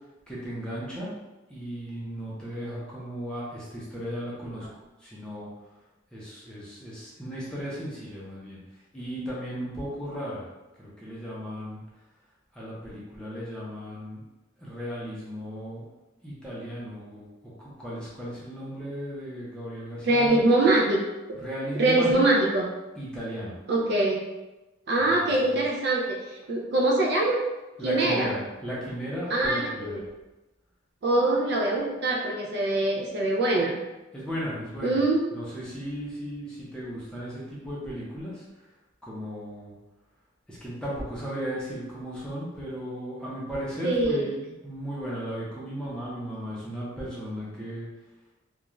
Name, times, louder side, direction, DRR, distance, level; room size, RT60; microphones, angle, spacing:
voice 1, 0.3-1.1 1.5-4.7 5.0-5.5 6.1-8.6 8.9-10.5 10.8-11.8 12.5-14.2 14.6-15.8 16.2-20.6 21.4-22.4 23.0-23.6 25.2-25.6 27.8-30.0 34.1-35.0 35.3-38.4 39.0-39.7 40.5-47.9, equal, 5° left, -8 dB, 0.6 m, -36 dB
voice 2, 20.0-21.0 21.7-22.7 23.7-24.2 24.9-27.4 27.8-28.3 29.3-30.0 31.0-33.7 34.8-35.4 43.8-44.3, right 2 dB, 50° right, -1 dB, 0.4 m, -23 dB
2.4 x 2.2 x 3.0 m, 1.1 s
head